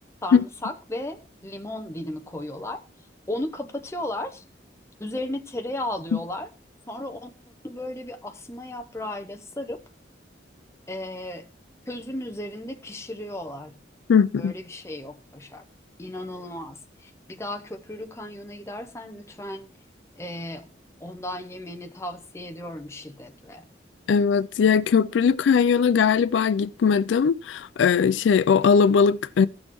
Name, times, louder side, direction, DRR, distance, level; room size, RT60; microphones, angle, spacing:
voice 1, 0.2-2.8 3.3-4.4 5.0-6.5 6.9-7.3 7.6-9.8 10.9-11.5 11.9-13.7 14.4-15.6 16.0-19.7 20.2-20.7 21.0-23.6, left 1 dB, 15° left, 0.7 m, -35 dB
voice 2, 14.1-14.5 24.1-29.5, left 6 dB, 80° left, 0.4 m, -19 dB
16.0 x 6.3 x 3.0 m
head